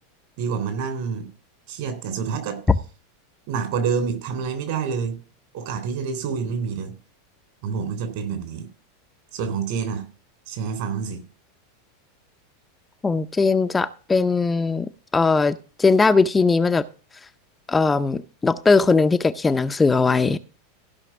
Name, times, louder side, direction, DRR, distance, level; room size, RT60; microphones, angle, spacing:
voice 1, 0.4-1.3 1.7-2.6 3.5-5.2 5.5-6.9 7.6-8.7 9.3-10.1 10.5-11.2, right 6 dB, 55° right, 3.4 m, -27 dB
voice 2, 13.0-16.8 17.7-20.4, left 4 dB, 15° left, 0.6 m, -19 dB
15.0 x 5.8 x 5.9 m
figure-of-eight pair, 85°, 0 cm